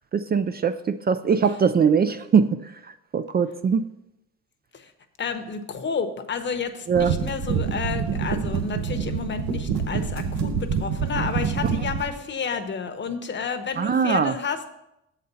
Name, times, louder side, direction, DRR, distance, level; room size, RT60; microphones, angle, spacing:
voice 1, 0.1-2.5 3.1-3.8 6.9-7.1 13.8-14.3, right 6 dB, 35° right, 11 dB, 0.4 m, -21 dB
voice 2, 5.2-14.7, left 5 dB, 40° left, 7 dB, 0.9 m, -31 dB
sound 1, 6.9-12.1, right 6 dB, 65° right, 0.9 m, -27 dB
7.5 x 4.1 x 6.8 m, 0.86 s
cardioid pair, 90°, 30 cm